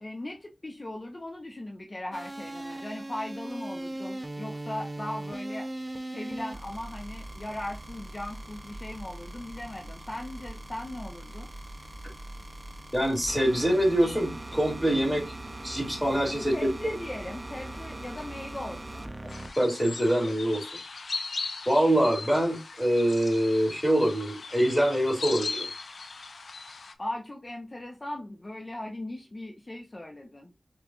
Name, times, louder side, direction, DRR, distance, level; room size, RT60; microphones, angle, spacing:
voice 1, 0.0-5.7 6.1-11.5 16.4-19.1 27.0-30.5, left 1 dB, 40° left, 0.6 m, -38 dB
sound 1, 2.1-19.5, right 1 dB, 30° right, 0.5 m, -40 dB
voice 2, 12.9-15.3 15.6-16.7 19.6-20.7 21.7-25.7, right 1 dB, 5° left, 2.1 m, -25 dB
sound 2, 19.3-26.9, left 4 dB, 85° left, 0.4 m, -38 dB
6.6 x 2.5 x 2.4 m
wide cardioid pair, 55°, 0 cm